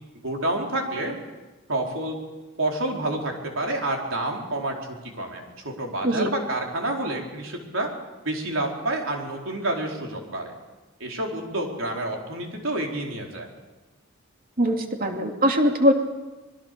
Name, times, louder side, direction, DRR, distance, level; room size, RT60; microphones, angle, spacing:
voice 1, 0.2-1.2 1.7-2.2 2.6-7.9 8.2-10.5 11.0-13.5, right 1 dB, 65° right, 1 dB, 4.4 m, -29 dB
voice 2, 14.6-15.9, equal, 45° right, 3 dB, 2.6 m, -21 dB
25.5 x 21.5 x 6.8 m, 1.2 s
head